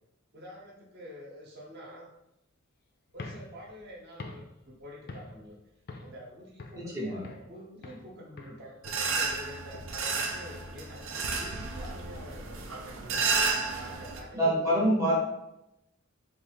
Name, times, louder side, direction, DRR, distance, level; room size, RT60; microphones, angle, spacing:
voice 1, 0.3-2.1 3.1-5.6 6.0-7.2 7.5-14.8, left 1 dB, 55° right, -2 dB, 0.8 m, -47 dB
sound 1, 3.1-5.5 5.9-6.2 6.6-7.5 7.8-8.1 8.4-11.5, left 3 dB, 50° left, 0.4 m, -46 dB
voice 2, 6.7-7.2 14.3-15.2, equal, 15° right, -5 dB, 0.6 m, -26 dB
sound 2, 8.8-14.2, right 4 dB, 90° right, 0.5 m, -32 dB
3.6 x 2.4 x 3.3 m, 0.88 s
head